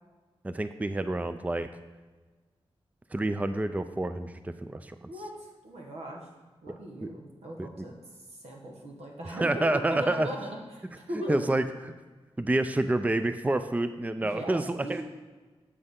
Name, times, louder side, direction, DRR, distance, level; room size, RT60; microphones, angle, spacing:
voice 1, 0.4-1.7 3.1-5.0 6.7-6.8 7.0-7.1 7.6-7.9 9.3-10.3 11.3-11.6 12.4-15.0, right 2 dB, 15° right, 10 dB, 0.4 m, -28 dB
voice 2, 5.1-6.3 6.6-7.9 8.3-9.5 9.9-11.5 14.2-15.0, right 1 dB, 90° right, 0 dB, 1.4 m, -39 dB
7.7 x 6.2 x 3.7 m, 1.3 s
cardioid pair, 55°, 11 cm